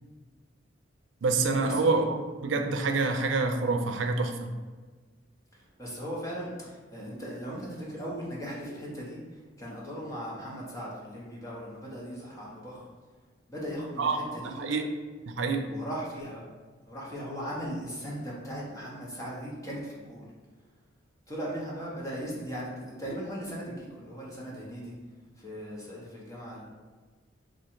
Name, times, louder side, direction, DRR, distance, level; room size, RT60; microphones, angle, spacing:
voice 1, 1.2-4.5 14.0-14.2 14.6-14.8 15.4-15.6, right 3 dB, 90° right, 5 dB, 0.4 m, -27 dB
voice 2, 5.8-9.2 9.6-12.9 13.5-14.8 15.7-16.4 16.9-20.3 21.3-24.9 25.4-26.6, equal, 15° left, -5 dB, 1.0 m, -38 dB
3.7 x 2.5 x 4.4 m, 1.4 s
head